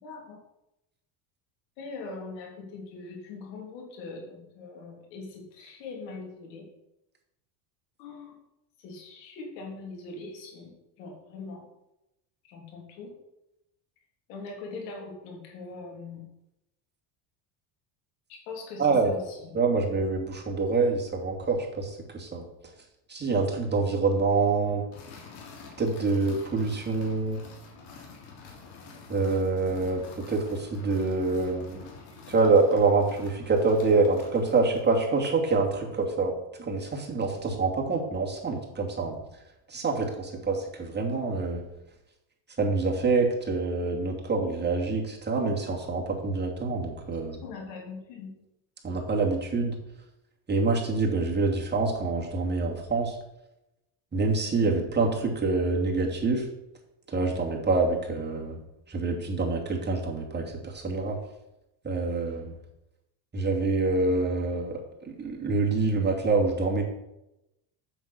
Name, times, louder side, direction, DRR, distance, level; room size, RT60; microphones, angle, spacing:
voice 1, 0.0-0.4 1.8-6.7 8.0-8.3 8.8-11.6 12.5-13.1 14.3-16.2 18.3-19.5 47.4-48.3, left 3 dB, 85° left, 0 dB, 3.4 m, -41 dB
voice 2, 18.8-19.1 19.5-22.5 23.1-24.8 25.8-27.4 29.1-31.9 32.3-36.3 36.6-39.2 39.7-41.6 42.6-47.4 48.8-49.8 50.5-53.2 54.1-56.5 57.1-58.6 58.9-61.2 61.8-62.6 63.3-66.8, right 3 dB, 20° right, -1 dB, 2.7 m, -26 dB
sound 1, 24.9-34.9, left 4 dB, 65° left, 3.0 m, -48 dB
7.8 x 6.4 x 6.8 m, 0.90 s
supercardioid pair, 105°, 48 cm